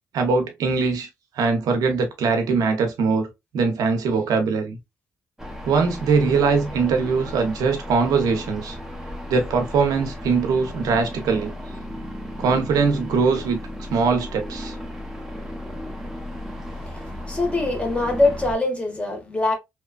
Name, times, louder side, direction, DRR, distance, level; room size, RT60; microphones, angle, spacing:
voice 1, 0.1-1.1 1.4-3.3 3.5-4.8 5.7-8.8 9.3-11.5 12.4-13.6 13.9-14.7, right 4 dB, 90° right, 0.7 m, -21 dB
sound 1, 5.4-18.5, left 1 dB, 5° right, 0.7 m, -35 dB
voice 2, 17.3-19.5, left 2 dB, 20° left, 1.0 m, -22 dB
2.8 x 2.2 x 2.3 m
cardioid pair, 90°, 6 cm